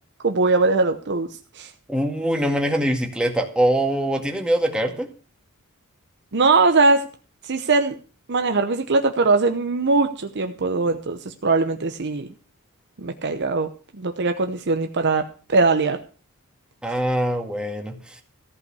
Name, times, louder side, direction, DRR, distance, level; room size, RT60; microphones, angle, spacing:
voice 1, 0.2-1.3 1.5-1.7 6.3-7.1 7.4-8.0 8.3-12.3 13.0-13.7 13.9-16.0, right 3 dB, 55° right, 6 dB, 0.9 m, -21 dB
voice 2, 1.9-5.1 16.8-18.2, right 1 dB, 5° right, 3 dB, 1.9 m, -23 dB
14.5 x 5.5 x 8.3 m, 0.39 s
head